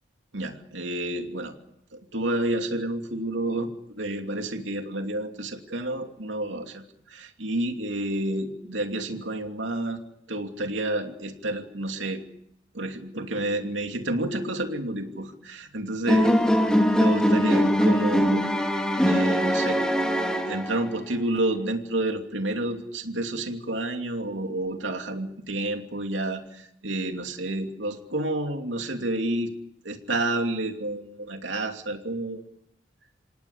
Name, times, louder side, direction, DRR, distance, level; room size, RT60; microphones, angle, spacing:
voice 1, 0.3-1.5 1.9-10.0 10.3-12.2 12.7-16.3 17.0-18.5 19.0-19.8 20.4-29.5 29.8-32.4, right 1 dB, 90° right, 4 dB, 2.8 m, -30 dB
sound 1, 16.1-21.0, equal, 5° left, 3.0 m, -22 dB
27.5 x 18.5 x 8.5 m, 0.73 s
head